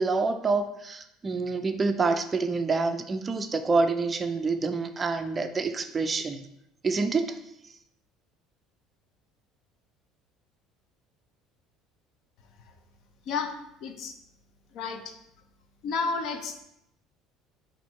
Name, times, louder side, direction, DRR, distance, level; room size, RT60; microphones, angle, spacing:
voice 1, 0.0-6.5 6.8-7.4, right 4 dB, 25° right, 8 dB, 0.3 m, -27 dB
voice 2, 13.3-14.2 14.7-15.1 15.8-16.6, left 4 dB, 60° left, 6 dB, 0.6 m, -32 dB
4.3 x 2.6 x 4.4 m, 0.82 s
cardioid pair, 120°, 0 cm